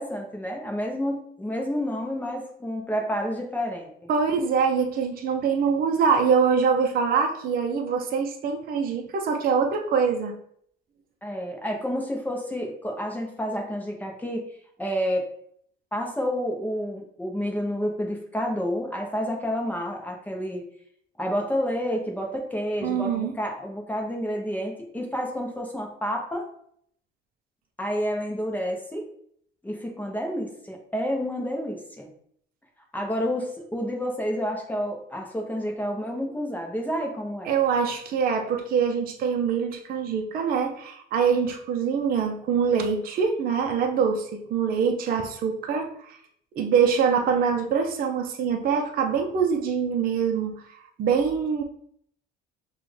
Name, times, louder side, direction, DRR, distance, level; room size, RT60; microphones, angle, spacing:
voice 1, 0.0-4.1 11.2-14.4 14.8-15.3 15.9-20.7 21.2-26.4 27.8-29.1 29.6-32.1 32.9-37.5, equal, 10° left, 0 dB, 0.7 m, -29 dB
voice 2, 4.1-10.3 22.8-23.3 37.5-46.2 46.5-50.6 51.0-51.6, right 6 dB, 50° right, 2 dB, 0.6 m, -24 dB
5.9 x 2.4 x 3.2 m, 0.65 s
cardioid pair, 120°, 20 cm